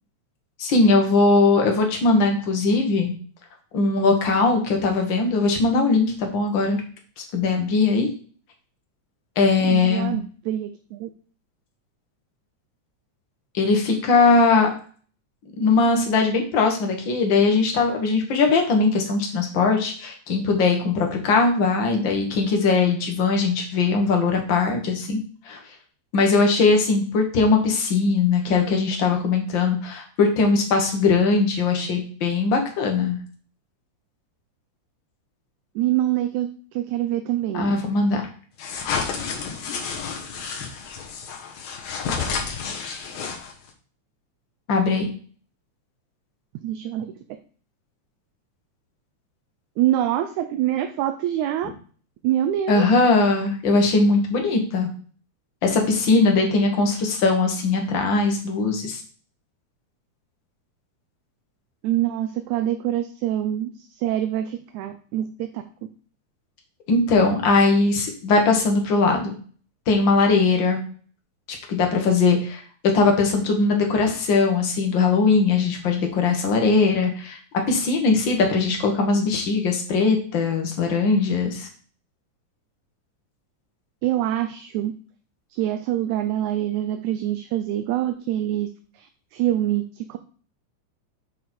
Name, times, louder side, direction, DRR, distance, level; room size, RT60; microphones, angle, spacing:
voice 1, 0.6-3.1 3.7-6.8 7.2-8.1 9.4-10.2 13.5-14.7 15.6-25.2 25.5-25.6 26.1-33.2 37.5-38.3 44.7-45.1 52.7-54.9 55.6-59.0 66.9-69.4 69.9-70.8 71.7-72.6 72.9-77.4 77.7-81.7, left 3 dB, 45° left, 3 dB, 1.9 m, -20 dB
voice 2, 9.6-11.1 35.8-37.6 46.6-47.1 49.8-51.7 52.2-52.8 61.8-63.7 64.0-65.6 84.0-84.9 85.5-88.7 89.0-90.2, right 12 dB, 80° right, 7 dB, 2.0 m, -25 dB
sound 1, 38.6-43.7, left 5 dB, 70° left, 2.5 m, -30 dB
6.8 x 6.2 x 4.4 m, 0.43 s
omnidirectional pair, 3.4 m